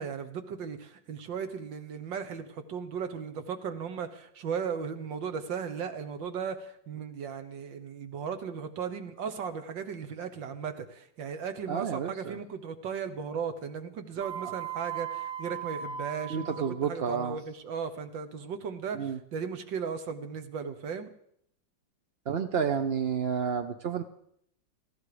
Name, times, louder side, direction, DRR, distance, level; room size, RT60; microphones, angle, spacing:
voice 1, 0.0-21.1, right 6 dB, 80° right, 9 dB, 1.9 m, -36 dB
voice 2, 11.7-12.4 16.3-17.4 18.9-19.2 22.3-24.0, right 7 dB, 60° right, 7 dB, 0.6 m, -30 dB
sound 1, 14.2-16.8, right 9 dB, 25° left, 0.9 m, -37 dB
19.0 x 15.0 x 4.9 m, 0.68 s
omnidirectional pair, 2.0 m